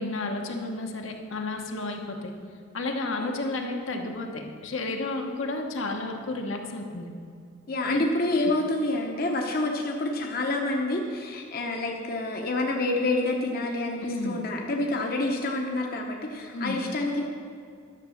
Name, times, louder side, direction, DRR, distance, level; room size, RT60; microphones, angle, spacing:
voice 1, 0.0-2.3 2.7-7.1 7.8-8.0 14.0-14.4 16.5-16.8, left 2 dB, 75° left, 2 dB, 1.1 m, -32 dB
voice 2, 7.7-17.2, left 2 dB, 50° left, 1 dB, 0.9 m, -28 dB
11.5 x 6.6 x 6.5 m, 2.3 s
head